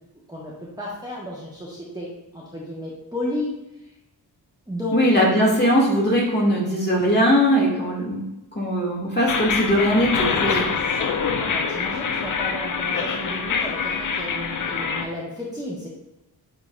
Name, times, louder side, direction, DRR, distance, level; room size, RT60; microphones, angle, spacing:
voice 1, 0.3-3.5 4.7-5.0 10.5-15.9, left 1 dB, 10° right, -6 dB, 1.4 m, -33 dB
voice 2, 4.9-8.2 8.5-10.3, equal, 25° left, -4 dB, 2.2 m, -20 dB
sound 1, 9.3-15.1, left 5 dB, 50° left, 0.7 m, -25 dB
9.4 x 3.9 x 2.5 m, 0.94 s
wide cardioid pair, 105°, 40 cm